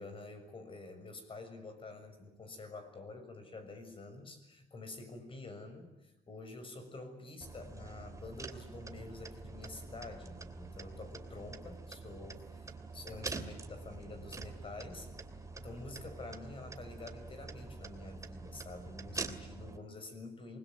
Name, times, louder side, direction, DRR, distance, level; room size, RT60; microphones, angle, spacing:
voice 1, 0.0-15.1 15.6-20.6, left 3 dB, 30° left, 8 dB, 6.7 m, -48 dB
sound 1, 7.4-19.8, right 3 dB, 20° right, 2.7 m, -46 dB
27.5 x 21.5 x 9.3 m, 0.93 s
cardioid pair, 110°, 17 cm